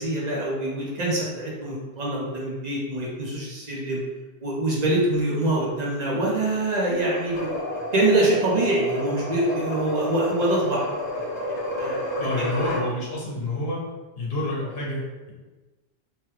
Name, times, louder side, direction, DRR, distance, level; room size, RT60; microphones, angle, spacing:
voice 1, 0.0-4.0 4.4-7.5 7.9-10.9 11.8-12.5, right 1 dB, 45° right, -4 dB, 0.8 m, -25 dB
sound 1, 7.1-12.9, left 1 dB, 45° left, 0.7 m, -31 dB
voice 2, 12.2-13.8 14.2-15.3, left 1 dB, 65° left, -4 dB, 1.0 m, -28 dB
3.1 x 2.2 x 3.1 m, 1.2 s
omnidirectional pair, 1.1 m